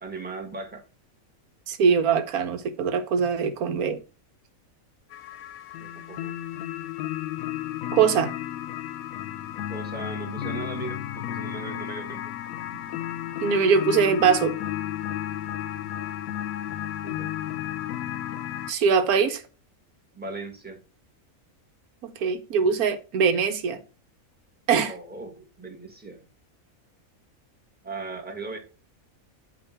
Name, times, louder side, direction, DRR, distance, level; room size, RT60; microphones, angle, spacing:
voice 1, 0.0-0.8 5.7-6.3 9.7-12.4 12.7-12.8 16.0-16.1 17.0-17.4 20.1-20.8 24.8-26.2 27.8-28.6, right 3 dB, 5° right, 1.2 m, -38 dB
voice 2, 1.7-4.0 7.9-8.3 13.4-14.6 18.7-19.4 22.0-23.8 24.7-24.9, right 6 dB, 85° right, 1.3 m, -22 dB
sound 1, 5.1-18.7, left 12 dB, 75° left, 1.0 m, -33 dB
8.6 x 2.9 x 5.6 m
omnidirectional pair, 1.5 m